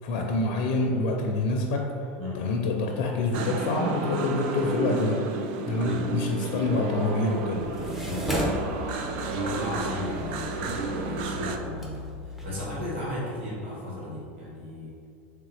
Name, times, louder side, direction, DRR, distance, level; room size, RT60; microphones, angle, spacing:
voice 1, 0.0-1.9 2.3-5.2 5.7-7.7, left 3 dB, 65° left, 1 dB, 0.5 m, -26 dB
sound 1, 3.3-11.6, right 4 dB, 65° right, 0.4 m, -32 dB
voice 2, 5.7-6.7 8.0-8.4 9.3-14.9, left 1 dB, 90° right, -7 dB, 1.2 m, -35 dB
sound 2, 7.6-12.8, left 1 dB, 5° right, 0.7 m, -35 dB
3.7 x 3.3 x 3.3 m, 2.4 s
supercardioid pair, 110°, 6 cm